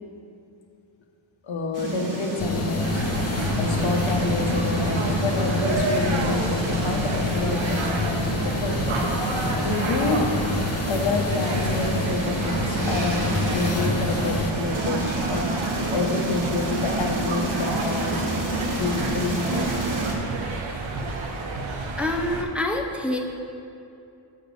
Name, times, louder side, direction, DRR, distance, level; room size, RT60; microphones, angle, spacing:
voice 1, 1.4-9.1 9.5-10.3 10.9-18.3 18.7-19.8 20.9-21.1, left 3 dB, 75° left, 2 dB, 1.1 m, -28 dB
sound 1, 1.7-20.1, right 2 dB, 40° right, 1.7 m, -30 dB
sound 2, 2.4-14.5, left 4 dB, 35° left, 0.5 m, -28 dB
sound 3, 2.8-22.4, right 3 dB, 75° right, 1.0 m, -30 dB
voice 2, 22.0-23.2, left 1 dB, ahead, 0 dB, 0.7 m, -26 dB
7.5 x 5.1 x 6.2 m, 2.6 s
cardioid pair, 75°, 47 cm